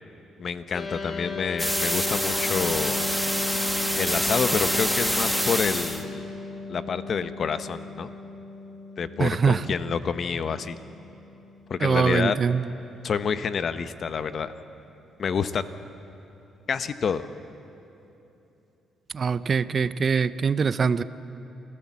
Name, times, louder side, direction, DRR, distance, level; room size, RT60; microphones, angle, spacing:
voice 1, 0.4-3.0 4.0-6.3 6.7-8.1 9.0-10.8 11.7-12.4 13.0-14.5 15.2-15.6 16.7-17.3, left 6 dB, 50° left, 12 dB, 0.8 m, -28 dB
sound 1, 0.7-12.3, left 3 dB, 35° left, 1.3 m, -36 dB
sound 2, 1.6-6.0, equal, ahead, 1.6 m, -26 dB
voice 2, 9.2-9.6 11.8-12.7 19.1-21.0, right 5 dB, 45° right, 15 dB, 0.6 m, -23 dB
28.0 x 13.5 x 7.4 m, 2.9 s
cardioid pair, 90°, 0 cm